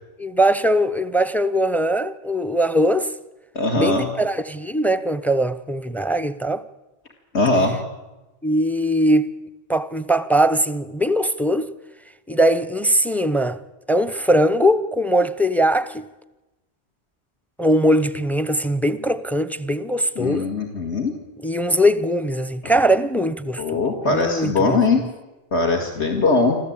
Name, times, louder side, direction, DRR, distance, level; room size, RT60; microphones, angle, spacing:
voice 1, 0.2-3.1 3.8-6.6 8.4-9.3 9.7-11.7 12.3-13.6 13.9-16.0 17.6-20.5 21.4-23.8 24.1-24.8, equal, ahead, 0.6 m, -20 dB
voice 2, 3.6-4.1 7.3-7.8 20.2-21.1 23.6-25.1 25.5-26.6, left 3 dB, 70° left, 2.3 m, -20 dB
26.5 x 14.5 x 8.8 m
omnidirectional pair, 1.2 m